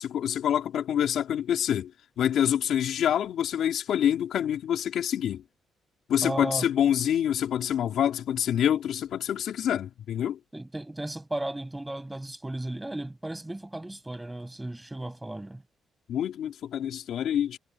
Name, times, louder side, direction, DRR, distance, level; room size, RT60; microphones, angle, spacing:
voice 1, 0.0-1.9 2.2-5.4 6.1-10.4 16.1-17.6, left 10 dB, 70° left, 3.6 m, -26 dB
voice 2, 6.2-6.7 10.5-15.6, right 1 dB, 10° right, 8.0 m, -35 dB
cardioid pair, 115°, 0 cm